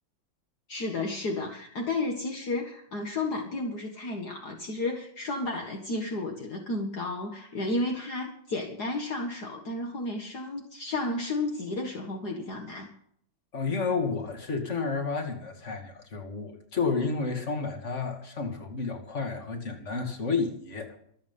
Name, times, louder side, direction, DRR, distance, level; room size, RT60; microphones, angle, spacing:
voice 1, 0.7-12.9, left 2 dB, 55° left, 2.3 m, -32 dB
voice 2, 13.5-21.0, left 4 dB, 35° left, 2.8 m, -31 dB
25.5 x 8.7 x 5.6 m
omnidirectional pair, 2.1 m